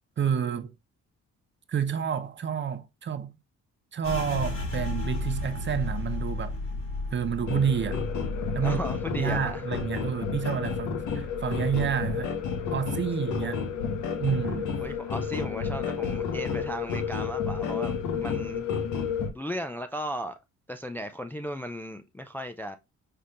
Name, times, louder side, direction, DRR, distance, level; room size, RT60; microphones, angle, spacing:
voice 1, 0.2-0.7 1.7-3.3 3.9-6.5 7.1-8.0 8.5-8.8 9.1-12.4 12.7-13.7 14.2-14.7, right 8 dB, 40° right, 0.7 m, -29 dB
sound 1, 4.0-13.4 13.7-15.0 15.3-15.8 16.2-16.8, left 2 dB, 45° left, 2.7 m, -36 dB
sound 2, 7.5-19.3, left 6 dB, 75° left, 1.1 m, -31 dB
voice 2, 8.6-9.7 14.8-18.0 18.2-18.7 19.3-20.4 20.7-22.8, equal, 5° left, 0.3 m, -36 dB
5.7 x 3.4 x 2.4 m
cardioid pair, 90°, 30 cm